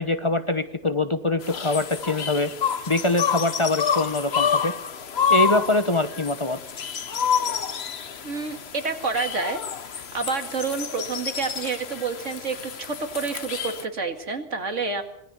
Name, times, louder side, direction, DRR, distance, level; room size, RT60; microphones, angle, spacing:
voice 1, 0.0-2.5 2.9-4.7 5.3-6.6, left 2 dB, 25° left, 10 dB, 1.0 m, -24 dB
sound 1, 1.4-13.8, left 7 dB, 60° left, 1.3 m, -28 dB
voice 2, 8.2-9.6 9.9-15.0, right 4 dB, 80° right, 7 dB, 2.4 m, -29 dB
25.5 x 18.5 x 6.9 m, 0.79 s
omnidirectional pair, 1.2 m